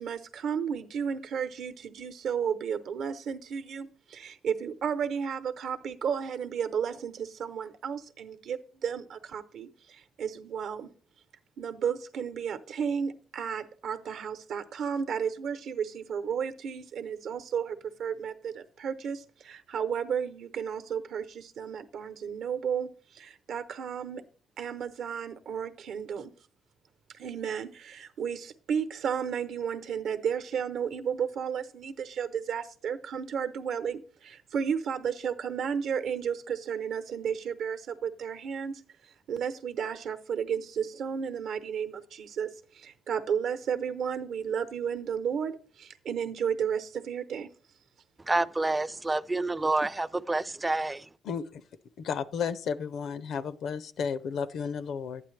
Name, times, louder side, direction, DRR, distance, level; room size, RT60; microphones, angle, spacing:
voice 1, 0.0-10.9 11.6-24.2 24.6-26.3 27.2-38.8 39.3-42.5 42.7-47.5, right 7 dB, 75° right, 0.8 m, -33 dB
voice 2, 48.3-51.1, right 2 dB, 15° right, 0.4 m, -28 dB
voice 3, 52.0-55.2, left 6 dB, 70° left, 0.6 m, -32 dB
11.5 x 9.1 x 3.3 m
cardioid pair, 90°, 0 cm